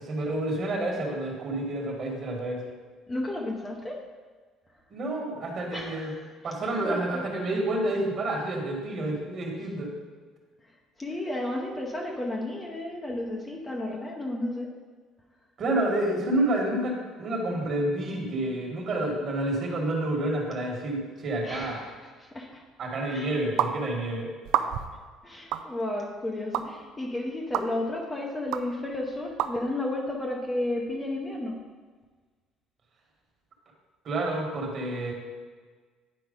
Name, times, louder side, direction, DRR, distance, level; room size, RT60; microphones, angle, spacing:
voice 1, 0.0-2.6 4.9-6.1 6.4-9.9 15.6-21.8 22.8-24.3 34.0-35.1, right 1 dB, 35° right, 0 dB, 1.6 m, -29 dB
voice 2, 3.1-4.0 5.7-7.2 10.6-10.7 11.0-14.7 21.4-22.6 23.1-23.4 25.2-31.6, left 1 dB, 10° left, 0 dB, 0.7 m, -33 dB
sound 1, 23.6-23.7 24.4-25.0 25.5-25.7 26.5-26.6 27.5-27.7 28.5-28.6 29.4-29.5, right 11 dB, 65° right, 0.4 m, -26 dB
9.8 x 4.6 x 5.2 m, 1.5 s
cardioid pair, 175°, 0 cm